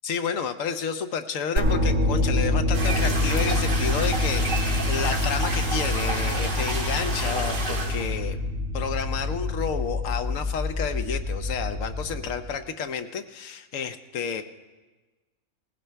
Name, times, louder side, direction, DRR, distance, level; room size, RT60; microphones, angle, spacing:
voice 1, 0.0-8.4 8.7-14.4, left 6 dB, 80° left, 8 dB, 1.2 m, -31 dB
sound 1, 1.6-12.5, left 2 dB, 90° right, 3.0 m, -26 dB
sound 2, 2.7-8.1, right 2 dB, 65° right, 2.2 m, -31 dB
18.0 x 15.5 x 3.4 m, 1.2 s
omnidirectional pair, 1.3 m